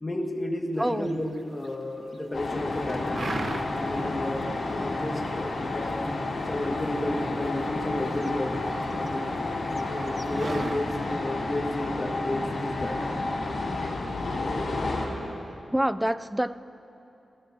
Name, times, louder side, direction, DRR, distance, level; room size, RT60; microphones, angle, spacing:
voice 1, 0.0-3.3 3.7-6.1 6.5-8.6 9.0-9.6 9.9-13.2, left 1 dB, 25° left, 1 dB, 1.6 m, -32 dB
voice 2, 0.8-1.2 15.7-16.6, right 1 dB, 5° right, 15 dB, 0.3 m, -26 dB
sound 1, 1.0-1.7 2.1-2.6 2.9-4.0 4.3-4.4 4.8-5.3 5.7-7.5 7.9-9.1 9.4-9.5 9.7-10.8, right 3 dB, 45° right, 0.7 m, -36 dB
sound 2, 2.3-15.1, left 2 dB, 65° left, 2.6 m, -31 dB
29.5 x 14.5 x 2.7 m, 2.8 s
wide cardioid pair, 120°, 0 cm